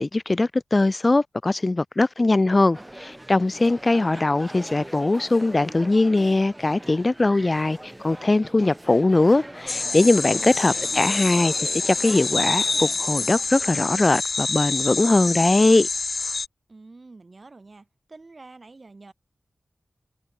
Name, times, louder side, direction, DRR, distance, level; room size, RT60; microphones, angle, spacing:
voice 1, 0.0-15.9, left 2 dB, 35° left, 0.3 m, -21 dB
sound 1, 2.7-14.1, right 1 dB, 15° right, 2.1 m, -41 dB
sound 2, 9.7-16.5, left 3 dB, 55° left, 0.9 m, -27 dB
voice 2, 10.3-11.4 16.7-19.1, right 3 dB, 45° right, 2.4 m, -48 dB
wide cardioid pair, 65°, 0 cm